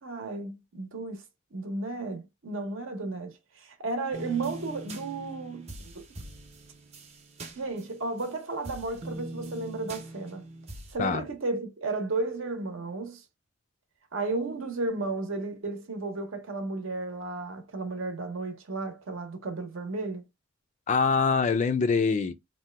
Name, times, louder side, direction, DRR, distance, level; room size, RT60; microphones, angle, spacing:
voice 1, 0.0-1.2 1.5-6.0 7.6-10.5 10.9-13.2 14.1-20.2, right 3 dB, 70° right, 0.8 m, -33 dB
sound 1, 4.1-8.3 8.6-11.0, right 1 dB, 30° right, 0.7 m, -42 dB
voice 2, 20.9-22.3, left 5 dB, 35° left, 0.3 m, -24 dB
2.8 x 2.2 x 3.3 m
head